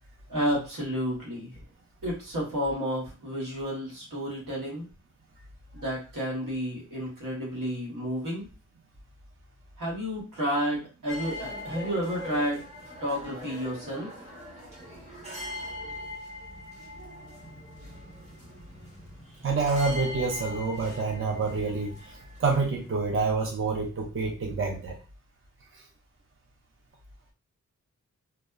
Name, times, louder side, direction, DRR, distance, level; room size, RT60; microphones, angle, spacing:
voice 1, 0.3-1.5 2.0-4.9 5.7-8.5 9.8-12.6 13.0-14.1, equal, 85° right, -4 dB, 1.2 m, -31 dB
sound 1, 11.1-22.9, left 1 dB, 20° right, 1.0 m, -41 dB
voice 2, 19.4-25.0 25.7-25.8, right 4 dB, 45° right, 0 dB, 0.5 m, -28 dB
2.7 x 2.1 x 2.3 m, 0.33 s
wide cardioid pair, 80°, 31 cm